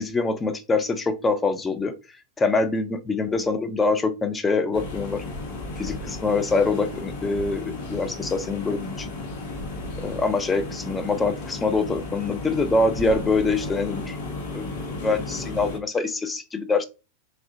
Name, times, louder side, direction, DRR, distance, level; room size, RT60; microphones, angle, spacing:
voice 1, 0.0-1.9 2.4-5.2 5.8-9.1 10.0-14.2 14.5-14.7 15.0-16.8, left 3 dB, 15° left, 8 dB, 0.4 m, -24 dB
sound 1, 4.7-15.8, left 2 dB, 50° left, 0.7 m, -34 dB
3.5 x 2.1 x 2.6 m, 0.29 s
figure-of-eight pair, 90°, 0 cm